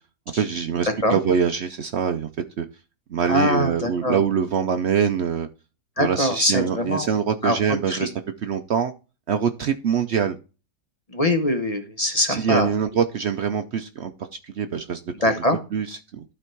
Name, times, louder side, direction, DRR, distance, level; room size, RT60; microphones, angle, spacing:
voice 1, 0.3-2.3 2.6-2.7 3.1-5.5 6.0-8.1 8.4-8.9 9.3-10.4 12.3-14.1 14.4-15.0 15.7-16.2, right 7 dB, 70° right, 8 dB, 0.6 m, -24 dB
voice 2, 0.9-1.2 3.3-4.2 6.0-7.1 7.4-7.6 7.9-8.1 11.1-12.7 15.2-15.6, left 1 dB, 30° left, 6 dB, 0.8 m, -23 dB
12.0 x 4.2 x 4.5 m, 0.33 s
omnidirectional pair, 1.8 m